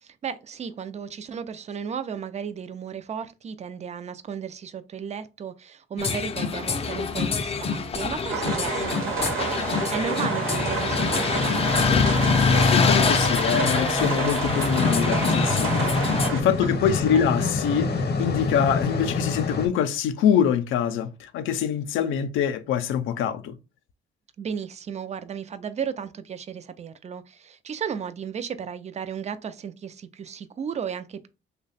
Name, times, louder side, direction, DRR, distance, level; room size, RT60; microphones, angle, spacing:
voice 1, 0.0-11.6 16.6-16.7 17.1-17.5 24.4-31.3, right 7 dB, 35° right, 0.4 m, -34 dB
sound 1, 6.0-16.3, left 5 dB, 30° left, 0.5 m, -24 dB
sound 2, 8.3-16.4, right 4 dB, 90° right, 1.0 m, -29 dB
voice 2, 12.7-15.9 16.3-17.9 18.2-23.6, left 8 dB, 80° left, 0.5 m, -24 dB
sound 3, 14.4-19.7, left 4 dB, 55° left, 0.7 m, -27 dB
3.1 x 2.2 x 4.0 m
cardioid pair, 90°, 20 cm